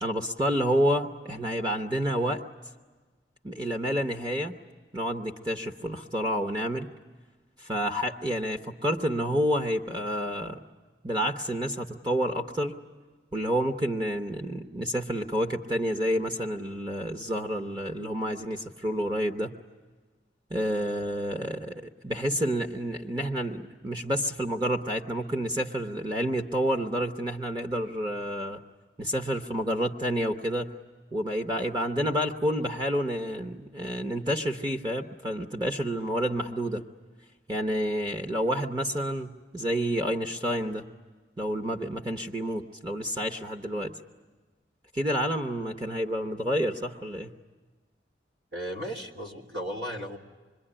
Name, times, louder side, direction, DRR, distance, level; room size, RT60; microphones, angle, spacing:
voice 1, 0.0-2.4 3.4-4.5 4.9-6.9 7.6-10.6 11.0-12.7 13.3-19.5 20.5-28.6 29.0-30.7 31.1-36.8 37.5-40.8 41.4-43.9 44.9-47.3, equal, 25° right, 4 dB, 0.9 m, -29 dB
voice 2, 48.5-50.2, equal, 85° right, 0 dB, 3.0 m, -35 dB
26.5 x 22.5 x 10.0 m, 1.3 s
head